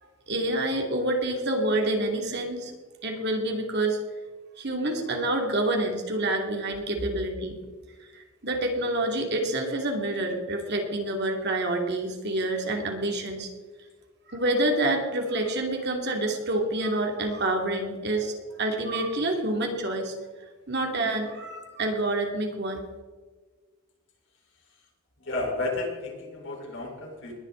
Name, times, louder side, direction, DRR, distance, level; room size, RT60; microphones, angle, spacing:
voice 1, 0.3-2.7 3.0-4.0 4.6-7.6 8.1-13.5 14.3-20.1 20.7-22.8, right 1 dB, 55° right, 2 dB, 2.6 m, -27 dB
voice 2, 25.2-27.4, left 2 dB, 60° left, 0 dB, 4.4 m, -32 dB
20.5 x 11.0 x 4.0 m, 1.4 s
head